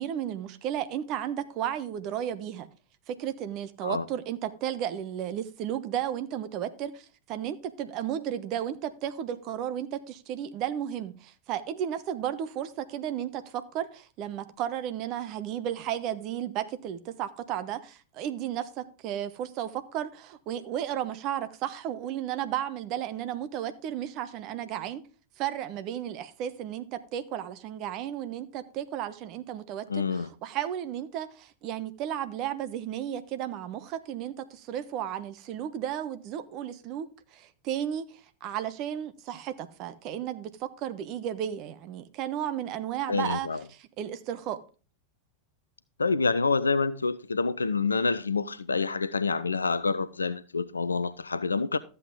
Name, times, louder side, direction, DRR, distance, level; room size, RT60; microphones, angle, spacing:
voice 1, 0.0-2.7 3.1-25.0 25.4-37.1 37.3-43.5 43.8-44.6, right 10 dB, 40° right, 1.1 m, -34 dB
voice 2, 29.9-30.3 43.1-43.6 46.0-51.8, left 4 dB, 75° left, 0.5 m, -27 dB
13.0 x 7.8 x 3.7 m
figure-of-eight pair, 90°, 0 cm